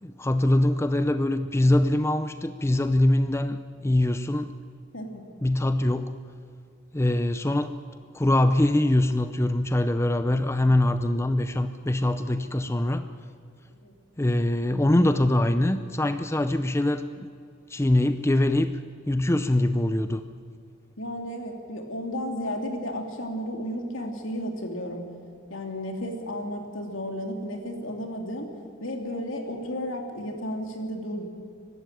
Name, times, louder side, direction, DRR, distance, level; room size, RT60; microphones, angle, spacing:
voice 1, 0.0-4.5 5.4-6.2 6.9-7.8 8.1-13.1 14.2-17.3 17.7-18.8 19.1-20.2, left 1 dB, 15° left, 10 dB, 0.5 m, -23 dB
voice 2, 21.0-25.0 25.5-28.5 28.8-31.3, equal, 75° left, 3 dB, 3.0 m, -33 dB
23.5 x 12.5 x 9.1 m, 2.3 s
head